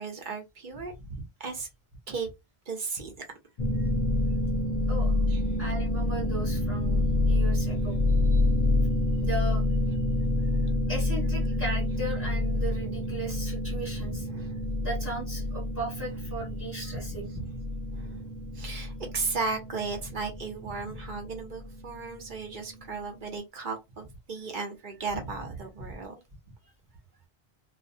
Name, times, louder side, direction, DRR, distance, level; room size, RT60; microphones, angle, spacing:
voice 1, 0.0-1.7 2.1-2.3 2.7-3.1 5.3-5.6 10.6-10.7 11.4-11.5 11.9-12.3 14.0-14.6 16.0-16.5 16.9-17.6 17.9-18.3 18.5-26.1, right 4 dB, 55° right, 0.8 m, -36 dB
sound 1, 3.6-23.1, left 2 dB, 45° left, 0.6 m, -28 dB
voice 2, 5.6-8.0 8.3-8.4 9.2-9.6 10.9-14.2 14.8-17.3, right 2 dB, 15° right, 1.1 m, -37 dB
2.3 x 2.1 x 2.6 m
omnidirectional pair, 1.1 m